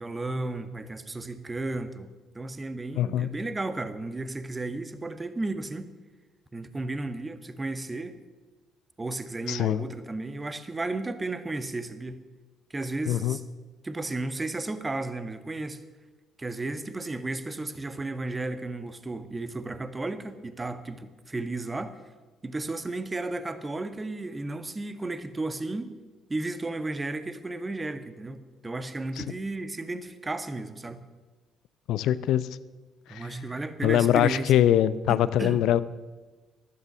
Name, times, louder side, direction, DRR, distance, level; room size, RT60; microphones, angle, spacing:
voice 1, 0.0-5.9 6.5-8.2 9.0-12.2 12.7-13.4 13.8-15.8 16.4-22.0 22.4-26.0 26.3-31.0 33.1-34.6 35.1-35.6, right 2 dB, 25° right, 11 dB, 1.5 m, -34 dB
voice 2, 2.9-3.3 9.5-9.8 13.1-13.4 29.2-29.3 31.9-32.5 33.1-33.3 33.8-35.8, left 11 dB, 65° left, 17 dB, 0.6 m, -23 dB
14.5 x 12.0 x 6.9 m, 1.3 s
hypercardioid pair, 50°, 0 cm